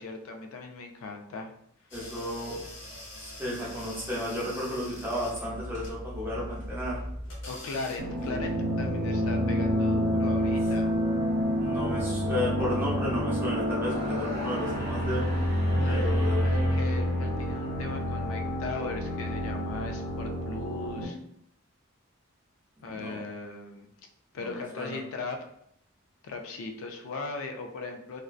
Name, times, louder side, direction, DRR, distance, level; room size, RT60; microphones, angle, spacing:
voice 1, 0.0-1.5 7.5-10.9 15.8-21.2 22.8-23.9 24.3-25.5 26.2-28.2, left 3 dB, 75° left, 4 dB, 0.4 m, -38 dB
sound 1, 1.9-8.6, left 1 dB, 60° left, 0.8 m, -41 dB
voice 2, 1.9-2.6 3.2-7.0 11.6-15.3 15.8-16.4 22.8-23.2 24.4-24.5 24.7-25.0, left 1 dB, 10° right, -6 dB, 0.6 m, -33 dB
sound 2, 8.0-21.0, equal, 85° right, 0.6 m, -28 dB
sound 3, 13.7-17.9, left 1 dB, 20° left, 0.9 m, -42 dB
2.5 x 2.0 x 2.4 m, 0.74 s
head